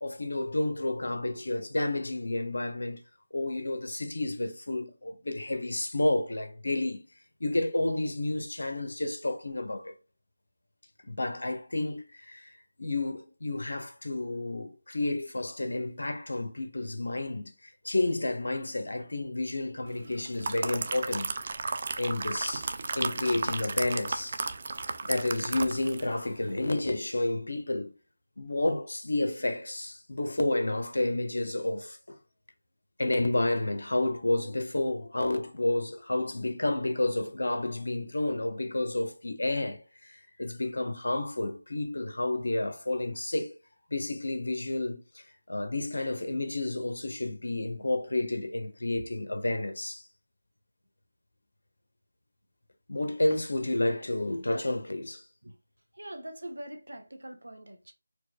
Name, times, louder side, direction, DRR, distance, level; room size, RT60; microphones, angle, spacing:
voice 1, 0.0-3.0 3.3-7.0 7.4-9.9 11.0-12.5 12.8-21.4 22.0-24.4 25.0-27.9 28.4-32.2 33.0-43.5 43.9-50.1 52.9-55.2, left 2 dB, 75° left, 0.8 m, -30 dB
sound 1, 20.1-26.1 26.5-26.6, right 3 dB, 45° right, 0.4 m, -34 dB
voice 2, 56.0-57.9, right 1 dB, 85° right, 0.9 m, -43 dB
4.5 x 2.3 x 2.3 m
figure-of-eight pair, 165°, 0 cm